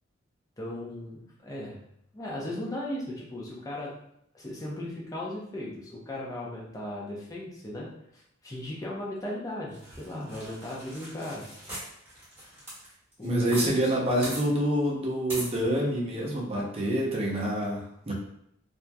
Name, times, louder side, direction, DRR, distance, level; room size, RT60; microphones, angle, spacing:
voice 1, 0.6-1.8 2.1-3.9 4.3-11.5 13.2-13.9, left 1 dB, 15° left, -4 dB, 0.6 m, -37 dB
sound 1, 9.7-13.7 13.9-14.0 14.2-14.4 15.3-15.5, right 1 dB, 10° right, 1.1 m, -40 dB
voice 2, 13.2-18.1, right 1 dB, 30° right, -3 dB, 0.6 m, -27 dB
2.9 x 2.4 x 2.2 m, 0.73 s
head